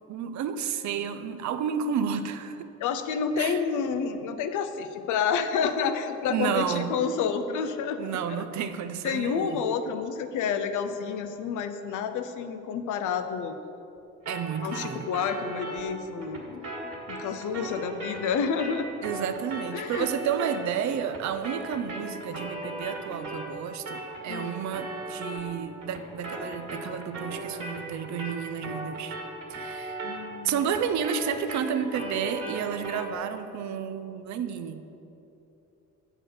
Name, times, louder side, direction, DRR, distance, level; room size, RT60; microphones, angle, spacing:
voice 1, 0.1-2.7 3.4-3.6 6.3-6.9 8.0-9.6 14.3-15.1 19.0-29.2 29.5-30.1 30.4-34.9, right 7 dB, 70° right, 10 dB, 0.6 m, -31 dB
voice 2, 2.8-8.4 9.0-13.6 14.6-16.7 17.1-18.9 19.7-20.1 24.3-24.5 30.0-30.6, left 6 dB, 80° left, 9 dB, 0.6 m, -29 dB
sound 1, 14.3-23.6 23.9-33.2, right 2 dB, 50° right, 1.9 m, -38 dB
7.6 x 4.5 x 6.6 m, 3.0 s
cardioid pair, 90°, 30 cm